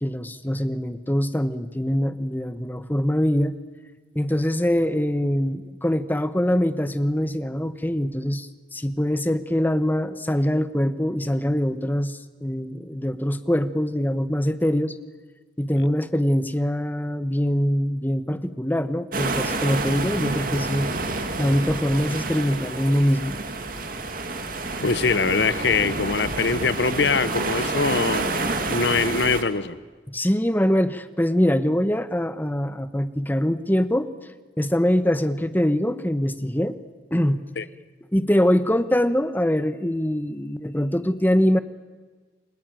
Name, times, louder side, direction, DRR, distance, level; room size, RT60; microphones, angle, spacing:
voice 1, 0.0-3.5 4.1-14.9 15.6-20.9 21.4-23.4 30.1-34.1 34.6-36.8 37.1-37.4 38.1-41.6, equal, 10° left, 11 dB, 1.1 m, -23 dB
sound 1, 19.1-29.4, right 3 dB, 55° right, 2.3 m, -28 dB
voice 2, 24.8-28.3 28.7-29.8 37.6-37.7, left 4 dB, 85° left, 15 dB, 1.0 m, -23 dB
30.0 x 20.5 x 9.2 m, 1.4 s
head